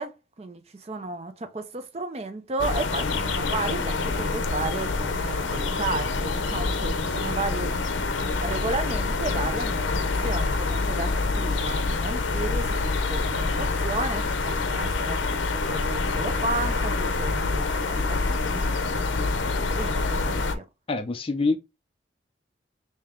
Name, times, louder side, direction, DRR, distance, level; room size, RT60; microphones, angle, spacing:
voice 1, 0.0-7.7 8.4-18.6 18.9-20.6, right 3 dB, 35° right, 0.4 m, -33 dB
sound 1, 2.6-20.5, left 3 dB, 85° left, 0.5 m, -26 dB
voice 2, 20.9-21.6, left 3 dB, 30° left, 0.4 m, -25 dB
3.4 x 2.7 x 3.5 m
head